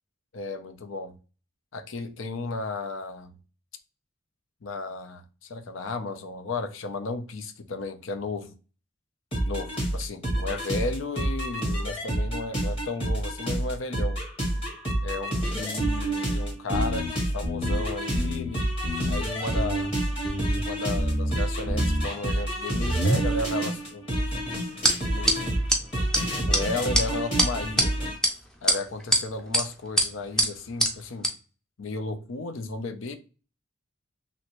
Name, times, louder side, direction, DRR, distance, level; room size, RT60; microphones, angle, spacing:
voice 1, 0.3-1.2 1.7-3.3 4.6-8.5 9.5-14.2 15.0-18.7 19.1-19.9 20.5-24.1 25.1-25.6 26.2-28.1 28.6-31.3 31.8-33.2, left 3 dB, 80° left, 0.5 m, -34 dB
sound 1, 9.3-28.2, right 1 dB, 25° left, 1.2 m, -28 dB
sound 2, 16.7-17.1 17.4-17.8 18.1-18.5 18.8-19.2 19.5-19.9 20.2-20.6 20.9-21.3 21.7-22.0, left 1 dB, 50° left, 1.0 m, -29 dB
sound 3, 24.8-24.9 25.3-25.4 25.7-25.8 26.1-26.2 26.5-26.6 26.9-27.0 27.4-27.9 28.2-28.3 28.7-29.2 29.5-29.6 30.0-30.1 30.4-30.5 30.8-30.9 31.2-31.3, right 1 dB, 5° left, 0.4 m, -21 dB
3.1 x 2.6 x 2.9 m
head